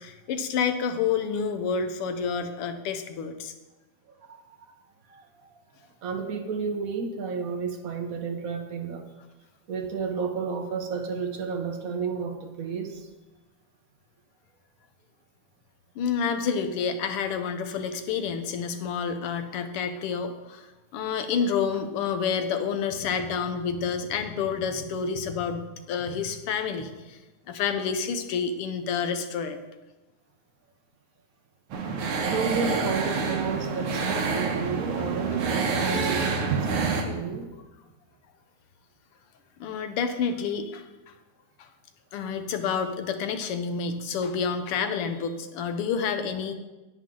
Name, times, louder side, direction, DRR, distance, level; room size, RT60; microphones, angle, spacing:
voice 1, 0.0-3.5 16.0-20.7 20.9-27.2 27.5-29.6 39.6-41.1 41.6-41.7 42.1-46.6, left 6 dB, 85° left, 7 dB, 1.8 m, -29 dB
voice 2, 4.1-4.7 5.1-5.6 6.0-9.1 9.7-13.1 32.3-37.5, right 5 dB, 55° right, 4 dB, 1.1 m, -32 dB
sound 1, 31.7-37.0, right 4 dB, 85° right, 2.0 m, -27 dB
10.0 x 8.9 x 3.8 m, 1.1 s
omnidirectional pair, 2.4 m